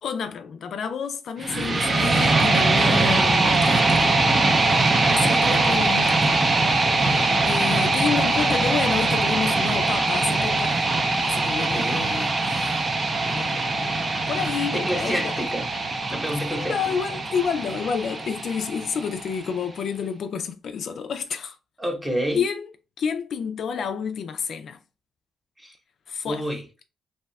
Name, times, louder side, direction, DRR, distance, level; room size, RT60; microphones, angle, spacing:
voice 1, 0.0-4.3 4.6-6.4 7.0-10.8 11.2-12.9 13.2-15.3 16.5-21.6 22.3-22.7 23.0-24.8 26.1-26.5, left 6 dB, 65° left, 0.3 m, -30 dB
sound 1, 1.4-19.4, right 3 dB, 30° right, 0.5 m, -22 dB
voice 2, 5.1-5.5 11.6-12.1 14.7-15.7 16.1-16.8 21.8-22.5 25.6-25.8 26.2-26.6, equal, 10° right, 0.9 m, -29 dB
2.7 x 2.3 x 3.2 m
cardioid pair, 95°, 0 cm